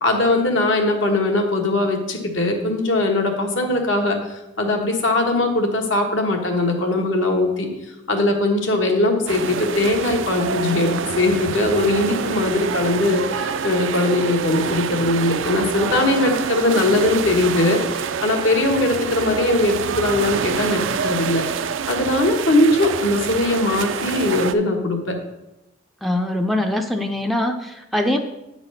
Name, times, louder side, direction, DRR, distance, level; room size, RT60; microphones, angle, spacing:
voice 1, 0.0-7.7 8.1-21.4 21.9-25.2, left 2 dB, 70° left, 2 dB, 1.4 m, -20 dB
sound 1, 9.3-24.5, right 6 dB, 75° right, 0.4 m, -27 dB
voice 2, 26.0-28.2, left 1 dB, ahead, 4 dB, 0.5 m, -23 dB
8.4 x 4.1 x 6.6 m, 0.93 s
head